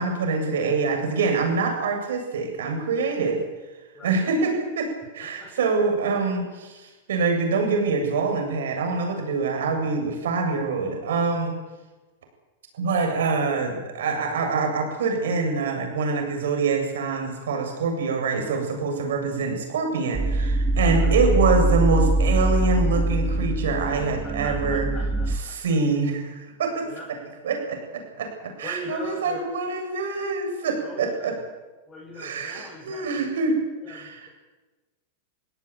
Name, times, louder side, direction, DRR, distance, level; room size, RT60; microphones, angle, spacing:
voice 1, 0.0-3.4 4.0-4.9 5.1-11.6 12.8-24.9 25.5-26.8 27.4-27.8 28.2-28.3 28.6-31.3 32.2-33.6 33.9-34.1, right 4 dB, 75° right, 3 dB, 7.8 m, -25 dB
voice 2, 5.2-5.9 20.9-21.1 24.0-25.8 26.8-27.1 28.6-29.5 30.8-31.4 31.9-33.3 33.8-34.3, left 1 dB, 20° left, -2 dB, 7.8 m, -41 dB
sound 1, 20.1-25.4, right 2 dB, 20° right, 1.8 m, -23 dB
24.0 x 17.0 x 9.0 m, 1.2 s
hypercardioid pair, 110°, 0 cm